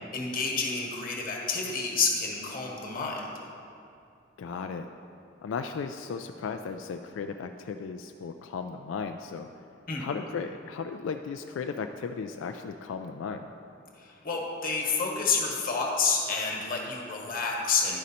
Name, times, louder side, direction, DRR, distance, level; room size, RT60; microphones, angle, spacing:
voice 1, 0.1-3.3 9.9-10.0 14.0-18.0, left 4 dB, 50° left, -1 dB, 1.3 m, -29 dB
voice 2, 4.4-4.9 5.4-9.5 10.0-13.5, left 5 dB, 80° left, 6 dB, 0.3 m, -35 dB
11.5 x 5.1 x 4.2 m, 2.6 s
head